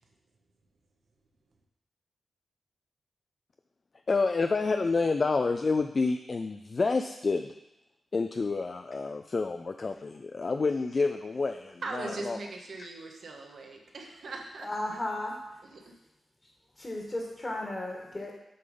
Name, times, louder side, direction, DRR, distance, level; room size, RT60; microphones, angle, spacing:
voice 1, 4.1-7.5 8.1-12.4 12.8-12.9, left 4 dB, 50° left, 7 dB, 0.3 m, -29 dB
voice 2, 11.8-14.7 15.6-15.9, right 3 dB, 70° right, 2 dB, 1.1 m, -40 dB
voice 3, 14.6-15.3 16.8-18.3, left 1 dB, 30° left, -1 dB, 1.5 m, -34 dB
7.7 x 3.6 x 5.3 m, 0.91 s
cardioid pair, 55°, 0 cm